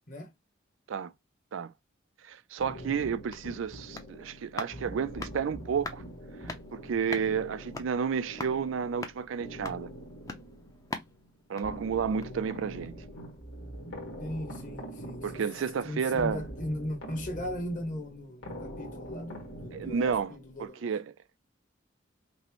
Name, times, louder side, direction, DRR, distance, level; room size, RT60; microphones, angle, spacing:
voice 1, 2.2-6.0 6.4-9.9 11.5-13.0 15.2-16.4 19.7-20.3 20.6-21.1, right 6 dB, 85° right, 0.4 m, -31 dB
sound 1, 2.6-20.7, equal, 85° left, 1.4 m, -44 dB
sound 2, 3.3-12.5 12.8-12.9, left 3 dB, 15° left, 0.5 m, -44 dB
voice 2, 14.2-15.4 15.8-20.9, left 1 dB, 40° left, 1.1 m, -38 dB
5.2 x 2.1 x 3.0 m
head